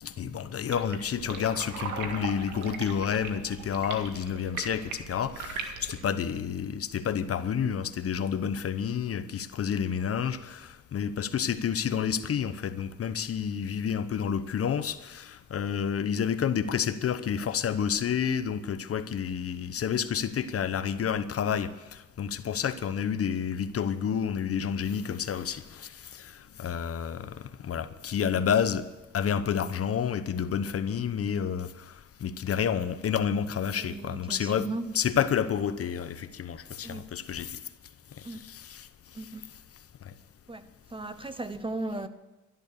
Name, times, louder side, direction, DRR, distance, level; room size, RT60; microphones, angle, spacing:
voice 1, 0.0-28.8 29.1-34.7 34.9-37.6 38.2-38.9 40.0-40.1, left 8 dB, 50° left, 0.9 m, -30 dB
sound 1, 0.7-6.1, right 5 dB, 85° right, 2.0 m, -39 dB
voice 2, 33.8-34.9 36.8-37.0 38.2-38.4 39.1-39.4 40.5-40.6 40.9-42.1, right 2 dB, 15° right, 0.9 m, -36 dB
12.5 x 11.5 x 6.7 m
cardioid pair, 90°, 30 cm